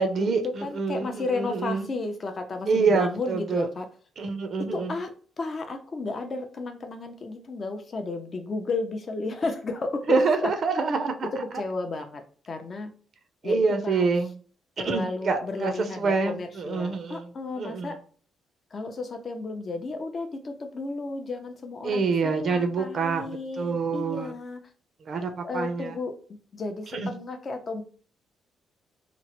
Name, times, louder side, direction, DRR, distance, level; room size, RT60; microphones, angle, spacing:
voice 1, 0.0-1.9 2.7-3.7 4.2-4.9 10.1-11.3 13.4-14.3 14.8-17.3 17.6-18.0 21.8-24.3 25.1-26.0 26.9-27.1, right 4 dB, 55° right, 7 dB, 0.4 m, -26 dB
voice 2, 0.6-3.9 4.7-5.1 5.4-10.5 11.5-12.9 13.4-13.6 13.8-14.0 14.8-18.0 18.7-24.6 25.4-26.1 26.5-27.8, left 3 dB, 40° left, 6 dB, 0.4 m, -33 dB
2.9 x 2.0 x 2.8 m, 0.43 s
cardioid pair, 90°, 0 cm